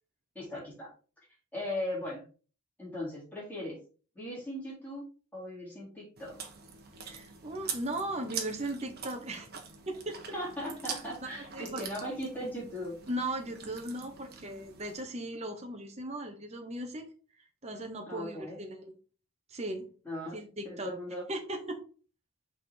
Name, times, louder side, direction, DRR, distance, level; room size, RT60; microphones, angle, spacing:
voice 1, 0.4-0.9 1.5-2.2 2.8-3.8 4.2-6.4 10.3-13.0 18.1-18.6 20.0-21.2, left 1 dB, 10° left, -6 dB, 3.7 m, -38 dB
Chewing mastication, 6.2-15.0, right 6 dB, 45° right, 1.3 m, -44 dB
voice 2, 7.0-9.5 9.9-10.2 11.2-11.8 13.1-17.1 17.6-18.9 19.5-19.9 20.3-20.9 21.3-21.8, right 1 dB, 30° right, 4 dB, 1.0 m, -37 dB
5.9 x 4.3 x 4.7 m, 0.39 s
head